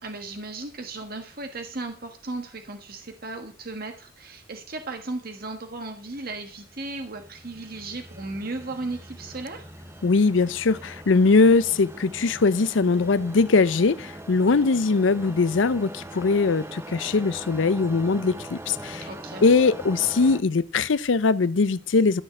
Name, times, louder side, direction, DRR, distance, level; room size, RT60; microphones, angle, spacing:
voice 1, 0.0-9.7 19.0-19.4, right 2 dB, 50° right, 1.4 m, -36 dB
sound 1, 6.3-20.4, right 1 dB, 15° right, 0.9 m, -41 dB
voice 2, 10.0-19.0 19.4-22.2, left 4 dB, 75° left, 0.6 m, -21 dB
13.0 x 6.5 x 7.7 m
head